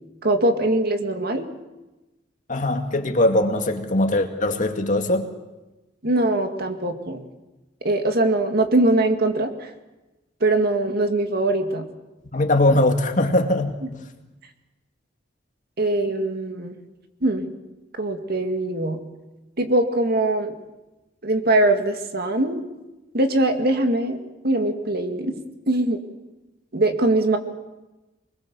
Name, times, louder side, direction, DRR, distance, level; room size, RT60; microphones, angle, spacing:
voice 1, 0.2-1.5 6.0-7.2 7.8-9.7 10.4-11.9 13.8-13.9 15.8-16.8 17.2-17.5 18.0-19.0 19.6-20.6 21.2-22.6 23.1-24.2 24.4-25.3 25.7-26.0 26.7-27.4, right 2 dB, 55° right, 6 dB, 2.1 m, -22 dB
voice 2, 2.5-5.3 12.3-13.7, left 1 dB, 45° left, 5 dB, 2.2 m, -21 dB
24.5 x 21.0 x 7.1 m, 1.0 s
head